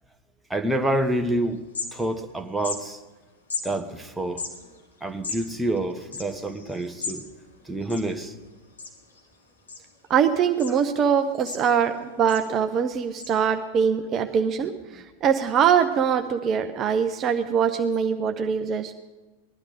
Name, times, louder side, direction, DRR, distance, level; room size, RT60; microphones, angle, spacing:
voice 1, 0.5-3.0 3.6-4.4 5.0-7.3 7.7-8.3, right 1 dB, 5° right, 6 dB, 1.1 m, -27 dB
sound 1, 1.2-1.3 1.5-2.3 2.6-2.8 3.5-3.7 4.3-7.2 7.5-7.6 7.8-8.4 8.8-9.2 9.7-10.2 10.6-10.7 11.2-11.9 12.3-12.5 13.2-13.3, left 4 dB, 70° left, 2.5 m, -35 dB
voice 2, 10.1-18.9, right 7 dB, 30° right, 6 dB, 0.8 m, -23 dB
20.0 x 12.0 x 5.1 m, 1.2 s
figure-of-eight pair, 90°, 0 cm